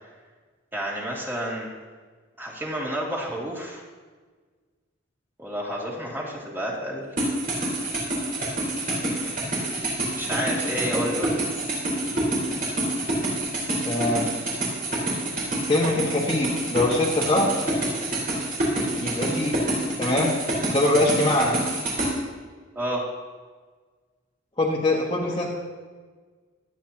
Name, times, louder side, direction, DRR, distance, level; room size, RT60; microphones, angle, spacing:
voice 1, 0.7-1.7 2.4-3.8 5.4-7.0 8.9-9.6 10.1-11.4 22.7-23.0 25.2-25.4, equal, 10° right, -4 dB, 2.6 m, -30 dB
sound 1, 7.2-22.1, right 1 dB, 45° right, 4.5 m, -27 dB
voice 2, 13.8-14.2 15.7-17.5 19.0-19.6 20.0-20.4 20.7-21.5 24.6-25.5, left 1 dB, 25° left, -6 dB, 1.7 m, -23 dB
25.0 x 9.3 x 3.0 m, 1.5 s
head